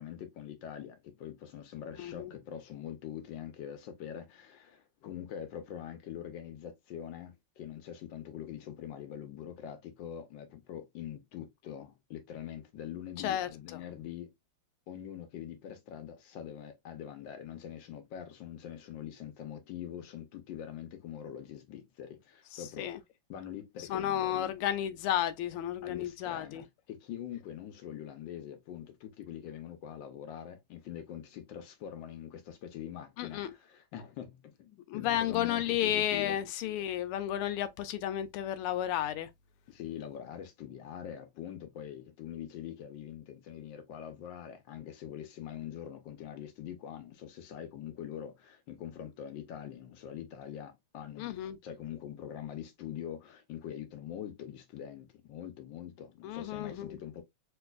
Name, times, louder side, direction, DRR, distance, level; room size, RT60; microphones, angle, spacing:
voice 1, 0.0-14.3 14.9-23.0 23.3-24.5 25.8-36.4 39.7-57.2, left 10 dB, 70° left, 1.3 m, -44 dB
voice 2, 2.0-2.3 13.2-13.8 22.5-23.0 23.9-26.6 33.2-33.5 34.9-39.3 51.2-51.6 56.2-57.0, left 11 dB, 90° left, 1.5 m, -32 dB
3.3 x 3.1 x 2.3 m
omnidirectional pair, 2.4 m